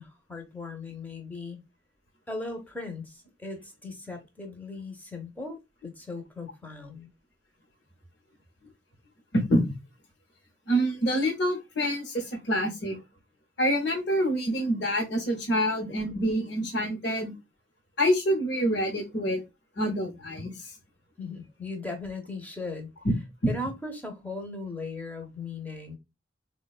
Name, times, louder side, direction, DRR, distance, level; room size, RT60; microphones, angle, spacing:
voice 1, 0.0-1.6 2.3-5.6 5.8-7.1 21.2-22.9 23.5-26.0, left 3 dB, 10° left, 0.6 m, -38 dB
voice 2, 9.3-9.6 10.7-13.0 13.6-17.3 18.0-19.4 19.8-20.7 23.0-23.1 23.4-23.5, equal, 60° left, 0.8 m, -26 dB
3.8 x 2.2 x 2.3 m
head